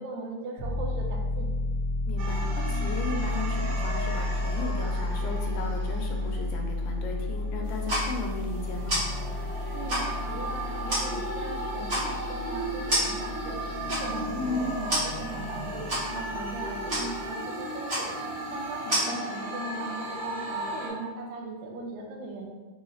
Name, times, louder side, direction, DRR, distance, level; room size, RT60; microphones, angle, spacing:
voice 1, 0.0-1.5 9.7-22.5, right 3 dB, 90° right, 0 dB, 2.4 m, -39 dB
Piano, 0.6-17.2, left 2 dB, 65° left, 1.0 m, -32 dB
voice 2, 2.1-9.0 14.3-14.7 18.9-19.2, left 3 dB, 85° left, 1 dB, 2.4 m, -35 dB
sound 1, 2.2-6.6 7.1-20.9, right 1 dB, 75° right, 2.2 m, -36 dB
sound 2, 7.6-19.0, equal, 50° right, 0.9 m, -34 dB
6.1 x 2.3 x 3.1 m, 1.3 s
omnidirectional pair, 3.9 m